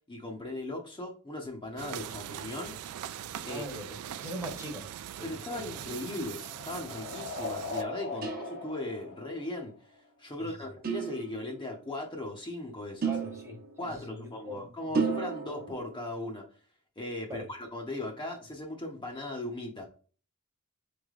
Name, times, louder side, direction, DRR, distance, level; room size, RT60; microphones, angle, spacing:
voice 1, 0.1-2.8 3.4-3.9 5.2-9.7 10.2-13.1 13.8-16.4 17.0-19.9, left 1 dB, 20° left, 1 dB, 0.6 m, -38 dB
sound 1, 1.8-7.8, right 10 dB, 85° right, 0.3 m, -41 dB
voice 2, 3.5-4.9 5.1-5.7 8.1-8.3 10.4-10.6 13.1-15.0 17.3-17.5, equal, 15° right, 2 dB, 0.9 m, -42 dB
sound 2, 5.4-10.0, left 3 dB, 60° left, 0.9 m, -40 dB
sound 3, 8.2-9.1 10.8-11.7 13.0-14.1 14.9-16.0, right 5 dB, 45° right, 0.8 m, -33 dB
4.4 x 3.2 x 2.4 m, 0.39 s
head